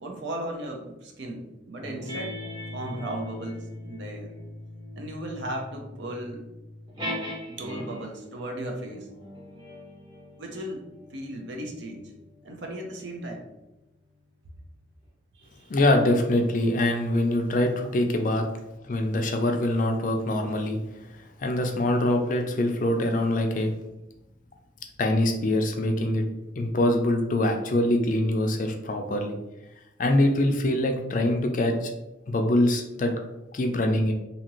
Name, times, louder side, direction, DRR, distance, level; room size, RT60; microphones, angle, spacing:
voice 1, 0.0-2.4 2.7-4.3 5.0-6.6 7.5-9.1 10.4-12.1 12.4-13.4 15.3-15.7, right 1 dB, 75° right, 1 dB, 0.6 m, -36 dB
sound 1, 1.8-8.2 9.0-13.9, left 1 dB, 25° right, 0.8 m, -40 dB
voice 2, 15.7-18.5 18.8-20.8 21.4-23.7 25.0-26.3 26.6-29.4 30.0-31.9 32.3-33.1 33.5-34.1, left 1 dB, 45° left, 4 dB, 0.4 m, -24 dB
2.8 x 2.5 x 2.9 m, 0.95 s
head